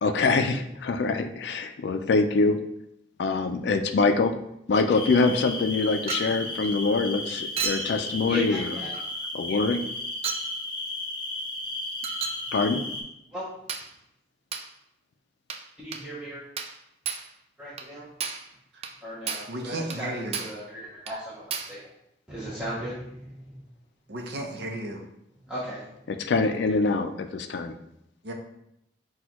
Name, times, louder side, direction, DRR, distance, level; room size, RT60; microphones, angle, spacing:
voice 1, 0.0-2.6 3.2-4.3 4.7-8.8 9.3-9.8 12.5-12.8 26.1-27.7, left 3 dB, 70° left, 7 dB, 0.4 m, -24 dB
sound 1, 4.9-13.0, left 2 dB, 30° left, 0.7 m, -34 dB
Chink clink, 6.1-6.4 7.6-7.9 8.9-9.1 10.2-10.5 12.0-12.4 13.7-13.9 14.5-14.7 15.5-15.7 15.9-16.1 16.6-16.8 17.0-17.3 17.8-17.9 18.2-18.5 18.8-19.0 19.3-19.5 19.9-20.0 20.3-20.6 21.1-21.2 21.5-21.8, right 6 dB, 35° right, 0.3 m, -33 dB
voice 2, 8.3-8.9 13.3-13.5 15.8-16.4 17.6-18.1 19.0-21.8 22.3-23.6 25.5-25.9, equal, 5° right, -9 dB, 0.7 m, -37 dB
voice 3, 19.5-20.4 24.1-25.0 28.2-28.3, right 1 dB, 65° right, 2 dB, 0.7 m, -34 dB
6.0 x 2.3 x 2.9 m, 0.80 s
head